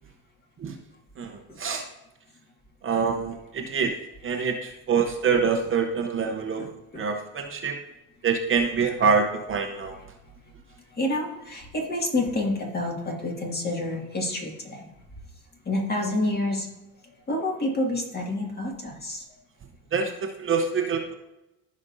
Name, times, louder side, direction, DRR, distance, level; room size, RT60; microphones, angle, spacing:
voice 1, 1.2-1.8 2.8-3.9 4.2-6.7 7.0-7.8 8.2-10.0 19.9-21.1, right 5 dB, 35° right, 3 dB, 0.8 m, -25 dB
voice 2, 6.6-7.0 11.0-14.9 15.7-16.7 17.3-19.2, left 1 dB, 25° left, 0 dB, 2.0 m, -28 dB
15.0 x 5.2 x 2.6 m, 0.94 s
cardioid pair, 120°, 36 cm